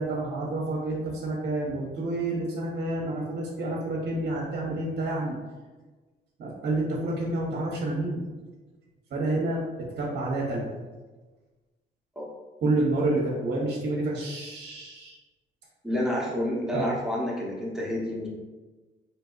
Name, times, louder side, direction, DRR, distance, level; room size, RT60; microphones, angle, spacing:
voice 1, 0.0-5.4 6.4-8.2 9.1-10.7 12.6-15.2 16.7-16.9, right 2 dB, 60° right, -3 dB, 0.7 m, -29 dB
voice 2, 15.8-18.3, left 1 dB, ahead, -4 dB, 0.8 m, -29 dB
3.3 x 2.9 x 2.4 m, 1.3 s
cardioid pair, 90°, 20 cm